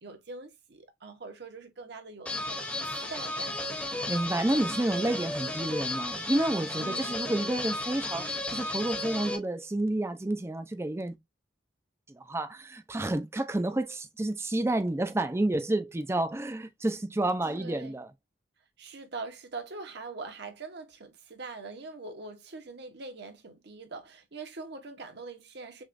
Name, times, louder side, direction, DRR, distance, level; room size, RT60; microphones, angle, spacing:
voice 1, 0.0-3.5 6.8-7.2 17.4-18.0 18.8-25.8, right 3 dB, 60° right, 1.0 m, -43 dB
sound 1, 2.3-9.4, left 2 dB, 10° left, 0.8 m, -34 dB
voice 2, 4.1-11.1 12.1-18.1, right 1 dB, 15° right, 0.5 m, -30 dB
6.3 x 2.4 x 2.5 m
head